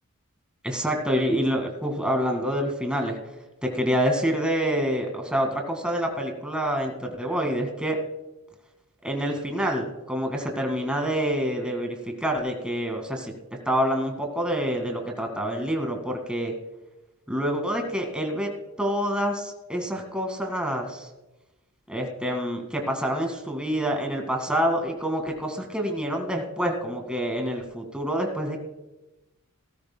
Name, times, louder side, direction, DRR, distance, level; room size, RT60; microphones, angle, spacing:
voice 1, 0.6-3.2 3.6-8.0 9.0-13.3 13.7-16.5 17.3-18.5 18.8-21.1 21.9-28.6, equal, 5° right, 3 dB, 1.9 m, -27 dB
18.0 x 13.0 x 2.2 m, 1.0 s
head